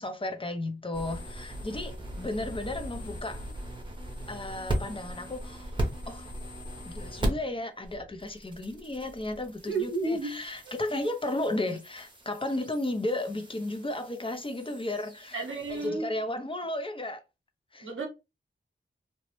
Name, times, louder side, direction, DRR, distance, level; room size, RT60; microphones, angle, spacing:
voice 1, 0.0-3.5 4.3-5.7 6.1-6.3 6.8-15.4 15.7-17.2 17.7-17.9, left 1 dB, 25° left, 0.5 m, -34 dB
sound 1, 0.9-7.6 7.8-15.9, right 1 dB, 25° right, 0.8 m, -38 dB
voice 2, 9.7-10.3 10.6-10.7 15.3-16.1 17.8-18.1, right 3 dB, 80° right, 0.7 m, -32 dB
2.9 x 2.0 x 3.0 m
wide cardioid pair, 75°, 20 cm